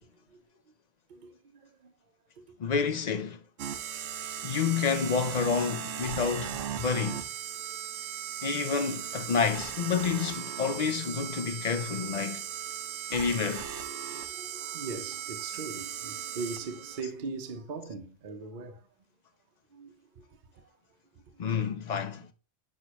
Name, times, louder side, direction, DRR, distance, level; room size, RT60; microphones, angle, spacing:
voice 1, 1.1-2.7 4.4-4.6 7.7-7.8 13.2-13.3 13.7-18.9 19.7-21.4, right 4 dB, 45° right, 0.8 m, -42 dB
voice 2, 2.6-3.4 4.4-7.2 8.4-12.5 13.1-13.7 21.4-22.3, left 6 dB, 50° left, 0.5 m, -29 dB
sound 1, 3.6-17.0, right 9 dB, 80° right, 1.0 m, -38 dB
6.6 x 5.4 x 2.9 m
omnidirectional pair, 1.3 m